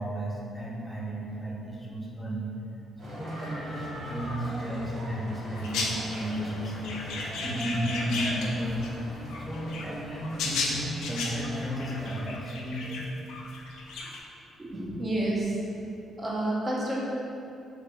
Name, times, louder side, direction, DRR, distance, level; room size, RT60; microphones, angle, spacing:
voice 1, 0.0-2.5 3.0-8.9 9.4-13.0, equal, 5° left, -5 dB, 0.7 m, -33 dB
sound 1, 3.0-12.2, right 1 dB, 55° right, 1.3 m, -40 dB
sound 2, 5.6-8.9 9.3-14.2, left 3 dB, 85° left, 0.3 m, -35 dB
voice 2, 14.6-15.5 16.2-17.0, right 1 dB, 30° right, -4 dB, 0.7 m, -29 dB
3.3 x 3.1 x 2.6 m, 2.8 s
cardioid pair, 90°, 0 cm